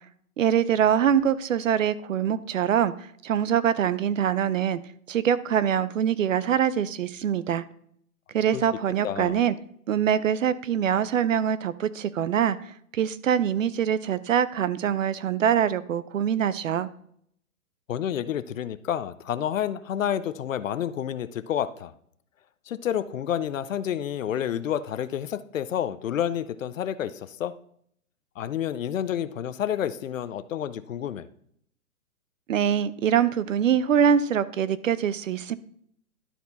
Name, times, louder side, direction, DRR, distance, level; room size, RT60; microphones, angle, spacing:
voice 1, 0.4-2.9 3.2-4.8 5.1-7.6 8.3-9.5 9.9-12.6 12.9-16.9 32.5-35.6, right 9 dB, 60° right, 16 dB, 0.6 m, -24 dB
voice 2, 9.0-9.4 17.9-21.9 22.7-27.5 28.4-31.3, left 10 dB, 60° left, 15 dB, 0.6 m, -29 dB
12.0 x 4.4 x 4.0 m, 0.65 s
hypercardioid pair, 170°, 44 cm